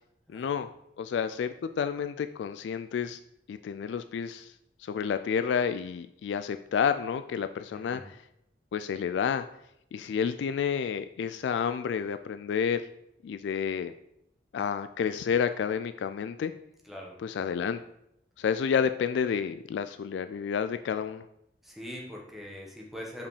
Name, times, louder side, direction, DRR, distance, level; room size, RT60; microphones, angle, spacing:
voice 1, 0.3-0.7 1.0-3.2 3.5-4.5 4.8-8.2 8.7-9.5 9.9-12.8 13.2-13.9 14.5-16.5 17.2-17.8 18.4-21.3, left 7 dB, 70° left, 10 dB, 0.3 m, -30 dB
voice 2, 7.7-8.1 16.8-17.2 21.6-23.3, left 1 dB, ahead, -2 dB, 1.3 m, -42 dB
5.2 x 5.2 x 4.9 m, 0.79 s
head